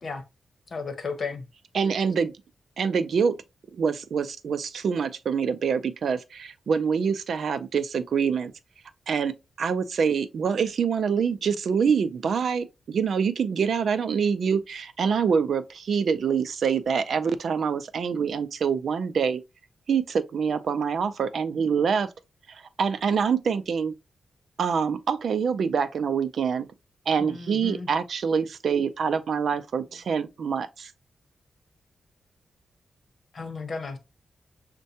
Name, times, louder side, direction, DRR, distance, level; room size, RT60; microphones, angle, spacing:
voice 1, 0.7-1.4 27.2-27.9 33.3-34.0, left 4 dB, 50° left, 1.0 m, -34 dB
voice 2, 1.7-2.3 2.8-3.4 3.7-8.5 9.1-19.4 19.9-22.1 22.5-23.9 24.6-26.7 27.1-30.9, right 6 dB, 70° right, 0.4 m, -25 dB
6.3 x 2.2 x 2.7 m
wide cardioid pair, 110°, 0 cm